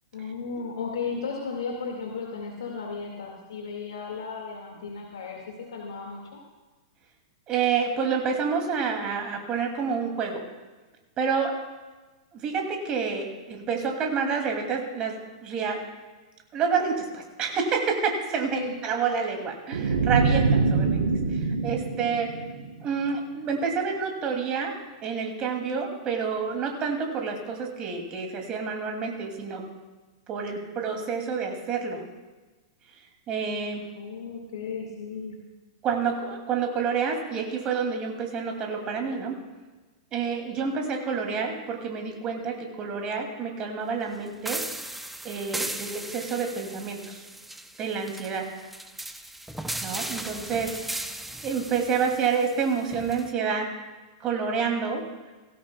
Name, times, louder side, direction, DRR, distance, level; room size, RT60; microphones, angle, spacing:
voice 1, 0.1-6.4 18.5-18.7 20.8-21.0 34.0-35.4, left 5 dB, 70° left, 0 dB, 2.1 m, -35 dB
voice 2, 7.5-10.4 11.2-11.5 12.3-15.9 16.5-21.0 21.3-22.4 22.8-24.7 25.0-29.7 30.3-32.0 33.3-33.9 35.8-39.4 40.1-44.6 45.2-47.2 47.8-48.5 49.8-50.8 51.4-53.7 54.2-55.0, right 5 dB, 30° right, 2 dB, 2.7 m, -28 dB
sound 1, 19.7-23.0, right 4 dB, 70° right, 1.6 m, -24 dB
sound 2, 44.5-53.3, right 1 dB, 5° right, 0.7 m, -37 dB
17.5 x 15.5 x 2.3 m, 1.2 s
figure-of-eight pair, 105°, 3 cm